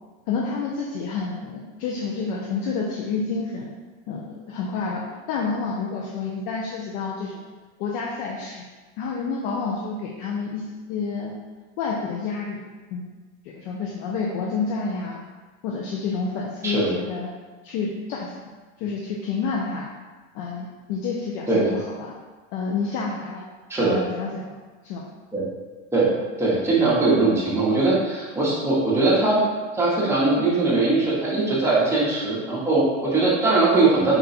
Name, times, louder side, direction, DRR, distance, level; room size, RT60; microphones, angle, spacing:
voice 1, 0.3-3.7 4.1-7.4 7.8-8.6 9.0-11.3 11.8-12.6 12.9-13.0 13.4-15.2 15.6-17.3 17.6-18.3 18.8-19.9 20.3-22.1 22.5-23.4 23.8-24.6 24.8-25.0 33.5-33.6, left 4 dB, 50° left, -2 dB, 0.5 m, -29 dB
voice 2, 16.6-17.0 21.5-21.7 23.7-24.0 25.3-25.4 25.9-26.1 26.4-29.4 29.7-34.2, right 3 dB, 5° right, -7 dB, 0.8 m, -20 dB
3.9 x 2.2 x 4.1 m, 1.3 s
supercardioid pair, 145°, 39 cm